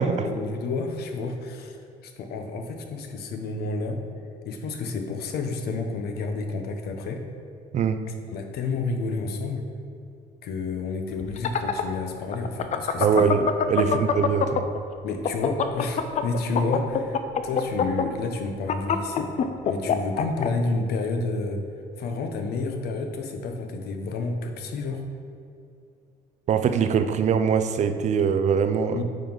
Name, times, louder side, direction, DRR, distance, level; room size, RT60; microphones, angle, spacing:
voice 1, 0.2-1.8 2.0-4.0 4.4-7.2 8.3-9.7 10.4-13.3 13.8-14.1 15.0-19.4 19.7-21.6 22.0-25.0 28.9-29.0, left 3 dB, 70° left, 5 dB, 0.8 m, -30 dB
voice 2, 7.7-8.1 13.0-14.7 26.5-29.0, right 6 dB, 45° right, 9 dB, 0.4 m, -22 dB
sound 1, 11.2-14.8 15.1-20.5, left 7 dB, 45° left, 0.5 m, -24 dB
9.1 x 3.8 x 3.9 m, 2.5 s
cardioid pair, 110°, 17 cm